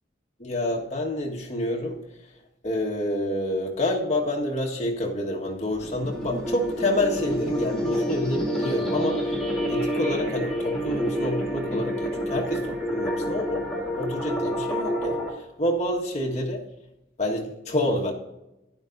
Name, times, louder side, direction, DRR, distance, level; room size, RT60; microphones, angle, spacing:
voice 1, 0.4-2.0 2.6-9.3 9.7-13.7 13.9-16.6 17.2-18.1, left 1 dB, 40° left, -2 dB, 1.6 m, -28 dB
sound 1, 5.7-15.3, equal, 5° left, 2.3 m, -28 dB
12.5 x 10.0 x 2.6 m, 0.94 s
head